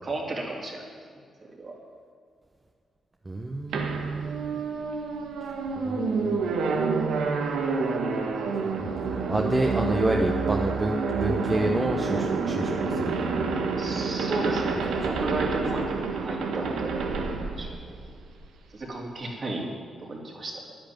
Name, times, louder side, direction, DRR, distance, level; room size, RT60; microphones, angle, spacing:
voice 1, 0.0-0.9 1.6-1.8 13.8-17.2 17.5-17.7 18.7-19.6 20.0-20.7, right 2 dB, 45° right, -2 dB, 3.8 m, -33 dB
voice 2, 3.2-4.6 5.7-6.5 8.5-8.9 9.3-13.6 15.0-15.2, right 2 dB, 25° right, 2 dB, 1.1 m, -29 dB
sound 1, 3.7-18.5, right 4 dB, 85° right, 1.4 m, -28 dB
10.5 x 10.0 x 9.1 m, 2.1 s
cardioid pair, 80°, 0 cm